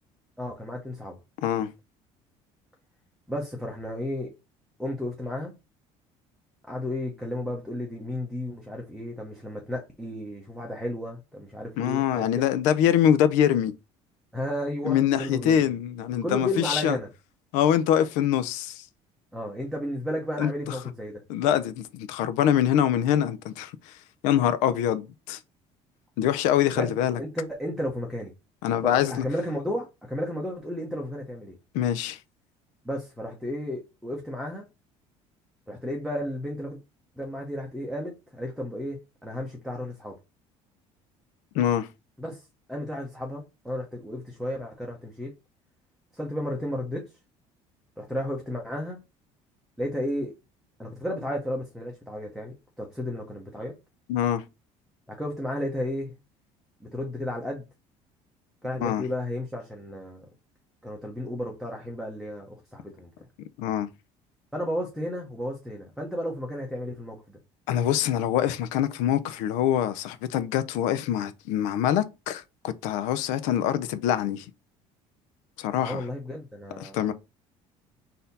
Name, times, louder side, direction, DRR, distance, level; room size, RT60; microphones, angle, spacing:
voice 1, 0.4-1.2 3.3-4.3 4.8-5.5 6.7-12.3 14.3-15.6 16.2-17.1 19.3-21.2 26.7-28.3 28.8-31.6 32.8-34.6 35.7-36.8 37.2-40.2 42.2-45.3 46.1-47.1 48.0-49.0 49.8-50.3 50.8-53.7 55.1-56.1 56.8-57.6 58.6-60.3 60.8-63.1 64.5-67.2 75.8-77.1, left 1 dB, ahead, 0.7 m, -33 dB
voice 2, 11.8-13.7 14.8-17.0 17.5-18.8 20.4-20.8 21.3-23.9 24.2-25.4 26.2-27.2 28.6-29.2 31.7-32.2 41.5-41.9 54.1-54.4 58.8-59.0 63.6-63.9 67.7-74.5 75.6-76.0 76.8-77.1, left 10 dB, 90° left, 0.5 m, -24 dB
4.1 x 2.7 x 4.0 m
cardioid pair, 150°, 13 cm